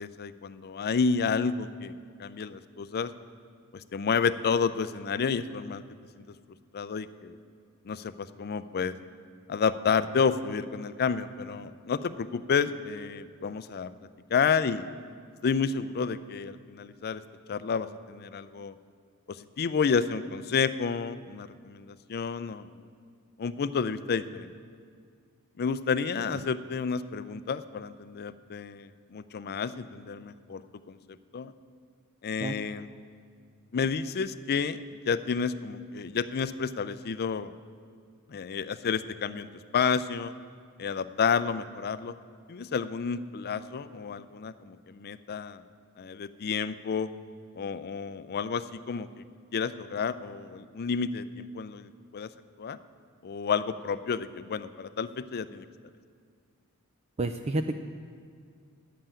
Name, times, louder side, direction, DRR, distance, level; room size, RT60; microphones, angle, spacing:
voice 1, 0.0-1.9 2.2-3.1 3.7-5.8 6.2-6.3 6.7-7.4 7.8-8.9 9.5-13.9 14.3-14.8 15.4-17.2 17.5-18.8 19.3-22.9 23.4-24.5 25.6-31.0 31.3-31.5 32.2-32.9 33.7-34.8 35.1-37.5 38.3-39.5 39.7-40.3 40.8-42.1 42.5-45.6 46.0-47.1 47.5-49.1 49.5-52.3 52.6-52.8 53.2-55.7, left 6 dB, 45° left, 13 dB, 0.4 m, -30 dB
voice 2, 57.2-57.7, right 2 dB, 30° right, 7 dB, 0.4 m, -29 dB
11.0 x 7.7 x 8.8 m, 2.2 s
head